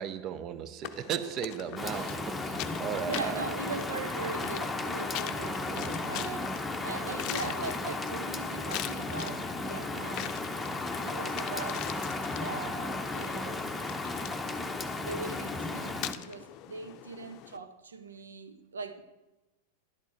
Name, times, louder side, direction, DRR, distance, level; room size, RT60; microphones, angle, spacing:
voice 1, 0.0-3.5 5.6-6.0, right 8 dB, 35° right, 0.8 m, -36 dB
sound 1, 0.8-17.6, left 12 dB, 40° left, 0.6 m, -43 dB
Rain, 1.8-16.1, left 2 dB, 10° left, 1.0 m, -35 dB
voice 2, 3.1-10.4 11.0-11.9 12.3-13.7 15.0-19.0, right 4 dB, 80° right, 1.1 m, -40 dB
12.0 x 10.5 x 4.5 m
figure-of-eight pair, 95°, 0 cm